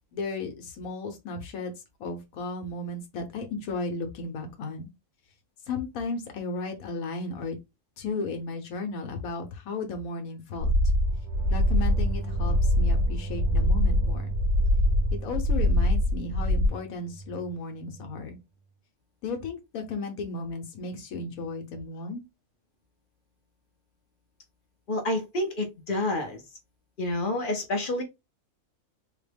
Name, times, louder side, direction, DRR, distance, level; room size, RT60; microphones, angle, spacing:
voice 1, 0.1-1.7 2.0-4.9 5.7-7.6 8.0-10.7 11.5-14.3 15.1-18.4 19.2-22.2, left 3 dB, 85° left, 1.3 m, -34 dB
sound 1, 10.6-16.7, equal, 85° right, 1.3 m, -23 dB
sound 2, 10.9-18.2, right 4 dB, 60° right, 0.9 m, -39 dB
voice 2, 24.9-26.4 27.0-28.0, left 1 dB, 45° left, 0.8 m, -28 dB
3.8 x 2.1 x 3.3 m
omnidirectional pair, 1.5 m